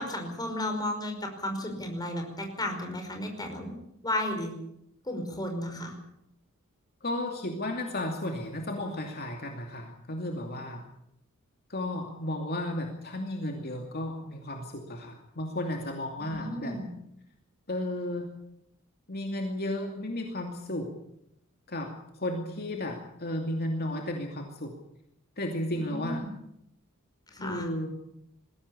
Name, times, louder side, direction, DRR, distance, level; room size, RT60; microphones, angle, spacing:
voice 1, 0.0-3.7 4.0-4.5 5.1-5.9 16.3-16.9 25.7-26.3 27.3-27.7, left 1 dB, 20° left, 4 dB, 5.3 m, -33 dB
voice 2, 7.0-10.8 11.7-16.8 17.7-18.3 19.1-20.9 21.7-24.7 25.4-26.3 27.4-27.9, left 1 dB, 45° left, 3 dB, 2.6 m, -33 dB
21.5 x 16.5 x 8.6 m, 0.77 s
head